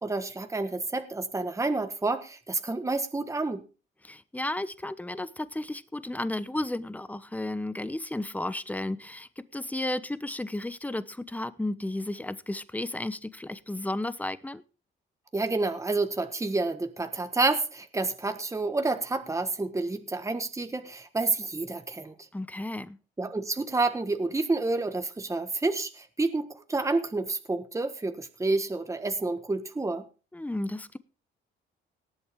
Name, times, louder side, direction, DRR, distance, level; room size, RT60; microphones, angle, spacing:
voice 1, 0.0-3.6 15.3-22.1 23.2-30.0, right 3 dB, 15° right, 8 dB, 1.4 m, -29 dB
voice 2, 4.0-14.6 22.3-23.0 30.3-31.0, left 1 dB, 10° left, 15 dB, 0.8 m, -33 dB
18.5 x 7.8 x 3.6 m, 0.34 s
cardioid pair, 90°, 20 cm